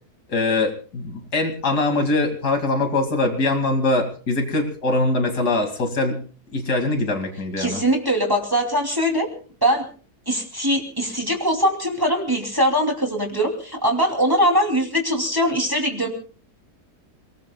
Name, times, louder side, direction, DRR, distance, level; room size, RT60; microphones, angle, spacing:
voice 1, 0.3-6.2 6.5-7.8, left 2 dB, 75° left, 4 dB, 2.9 m, -22 dB
voice 2, 7.6-9.3 9.6-9.9 10.3-16.1, equal, 15° right, 2 dB, 2.8 m, -21 dB
29.0 x 19.0 x 2.3 m, 0.40 s
omnidirectional pair, 1.7 m